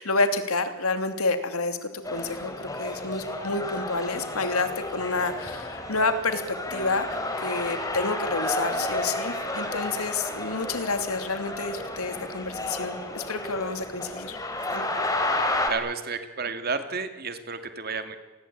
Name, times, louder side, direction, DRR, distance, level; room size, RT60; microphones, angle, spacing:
voice 1, 0.0-14.4 14.7-14.9, left 3 dB, 80° left, 9 dB, 2.9 m, -29 dB
sound 1, 2.0-15.7, left 2 dB, 15° left, 3.7 m, -32 dB
voice 2, 15.7-18.2, right 4 dB, 45° right, 8 dB, 2.5 m, -31 dB
28.5 x 20.5 x 8.8 m, 1.2 s
head